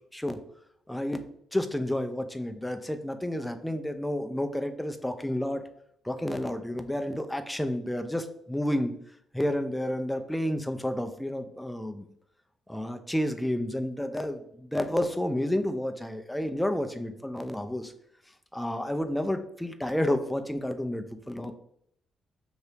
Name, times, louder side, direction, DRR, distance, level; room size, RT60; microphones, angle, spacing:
voice 1, 0.9-5.6 6.0-8.9 9.3-12.1 12.7-17.9 18.5-21.5, left 1 dB, 5° left, 7 dB, 0.4 m, -30 dB
2.8 x 2.6 x 3.4 m, 0.71 s
cardioid pair, 70°, 0 cm